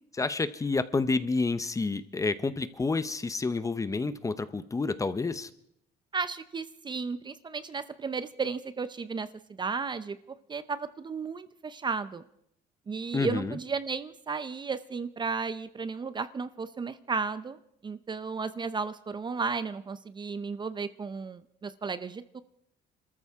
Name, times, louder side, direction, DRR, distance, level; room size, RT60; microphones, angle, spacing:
voice 1, 0.2-5.5 13.1-13.6, left 3 dB, 20° left, 13 dB, 0.8 m, -29 dB
voice 2, 6.1-9.3 9.6-10.2 10.5-12.2 12.9-17.6 17.8-22.4, right 5 dB, 25° right, 13 dB, 0.6 m, -34 dB
26.0 x 14.0 x 3.6 m, 0.74 s
cardioid pair, 110°, 17 cm